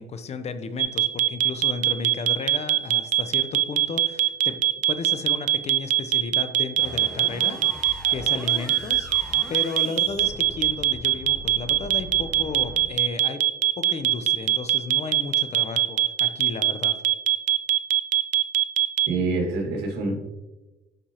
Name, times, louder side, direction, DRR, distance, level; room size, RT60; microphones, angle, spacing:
voice 1, 0.0-4.6 4.9-13.4 13.8-17.0, left 4 dB, 40° left, 10 dB, 0.7 m, -34 dB
sound 1, 0.8-19.1, right 14 dB, 50° right, 0.4 m, -21 dB
sound 2, 6.8-12.8, equal, 5° left, 1.3 m, -40 dB
voice 2, 19.1-20.2, right 3 dB, 80° right, 0 dB, 2.0 m, -26 dB
11.5 x 4.5 x 2.9 m, 1.1 s
cardioid pair, 110°, 17 cm